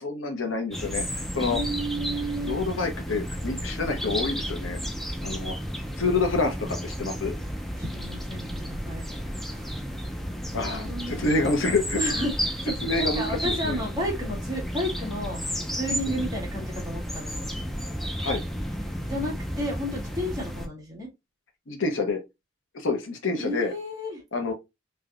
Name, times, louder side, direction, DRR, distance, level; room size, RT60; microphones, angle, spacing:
voice 1, 0.0-1.6 2.5-4.8 5.2-5.6 6.0-7.3 10.5-12.0 12.8-13.8 16.2-16.3 18.2-18.4 21.7-22.2 22.7-23.7 24.3-24.5, left 3 dB, 90° left, 0.9 m, -27 dB
sound 1, 0.7-20.7, equal, ahead, 0.4 m, -32 dB
voice 2, 1.4-2.6 7.8-9.0 9.4-9.7 10.8-11.2 12.0-12.6 13.1-15.4 15.7-17.5 19.1-21.1 23.4-24.2, equal, 20° right, 1.3 m, -32 dB
3.4 x 2.7 x 2.3 m
head